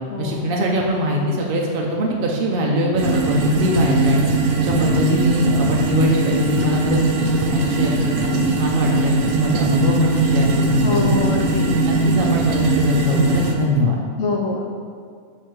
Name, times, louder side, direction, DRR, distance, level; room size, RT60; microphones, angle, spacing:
voice 1, 0.2-4.2 4.6-11.2 11.8-14.0, equal, 60° right, -1 dB, 0.6 m, -21 dB
sound 1, 3.0-13.5, right 2 dB, 75° right, 1.1 m, -20 dB
voice 2, 10.8-11.8 14.2-14.7, left 3 dB, 65° left, -1 dB, 0.7 m, -24 dB
6.7 x 3.2 x 4.6 m, 2.1 s
omnidirectional pair, 1.5 m